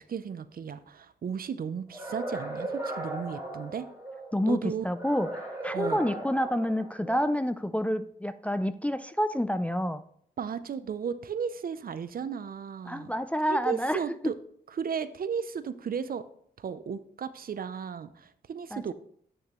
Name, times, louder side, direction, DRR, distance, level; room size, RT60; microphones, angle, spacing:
voice 1, 0.0-3.9 4.5-4.9 5.7-6.0 10.4-13.1 13.5-14.4 14.8-16.2 16.6-18.9, right 7 dB, 60° right, 13 dB, 0.5 m, -34 dB
sound 1, 1.9-4.3 4.9-7.3, right 1 dB, 15° right, 2.9 m, -37 dB
voice 2, 4.3-10.0 12.9-14.0 18.7-18.9, equal, 10° left, 10 dB, 0.4 m, -28 dB
8.8 x 6.4 x 3.0 m, 0.64 s
cardioid pair, 80°, 17 cm